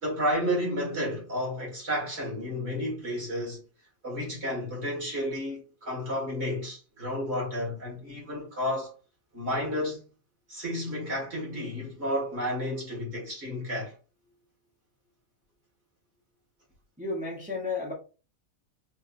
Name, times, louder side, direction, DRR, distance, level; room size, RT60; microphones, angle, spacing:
voice 1, 0.0-3.6 4.0-8.9 9.3-10.0 10.5-13.9, equal, 50° right, 2.3 m, -31 dB
voice 2, 17.0-17.9, left 3 dB, 5° right, 0.9 m, -32 dB
4.5 x 2.8 x 2.6 m
omnidirectional pair, 1.4 m